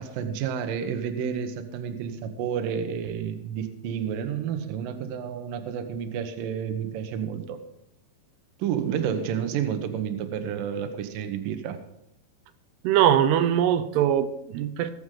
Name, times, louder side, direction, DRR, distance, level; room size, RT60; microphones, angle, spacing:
voice 1, 0.0-7.6 8.6-11.8, right 8 dB, 70° right, 7 dB, 2.5 m, -30 dB
voice 2, 12.8-14.9, right 10 dB, 90° right, 9 dB, 2.8 m, -22 dB
19.0 x 7.9 x 3.8 m, 0.82 s
omnidirectional pair, 4.5 m